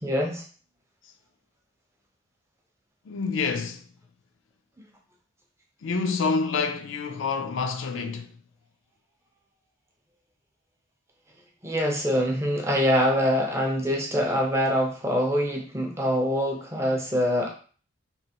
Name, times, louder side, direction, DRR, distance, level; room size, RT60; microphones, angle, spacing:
voice 1, 0.0-0.4 11.6-17.5, equal, 15° right, 0.5 m, -24 dB
voice 2, 3.1-3.8 5.8-8.3, left 4 dB, 70° left, 0.4 m, -27 dB
3.1 x 2.8 x 2.9 m
head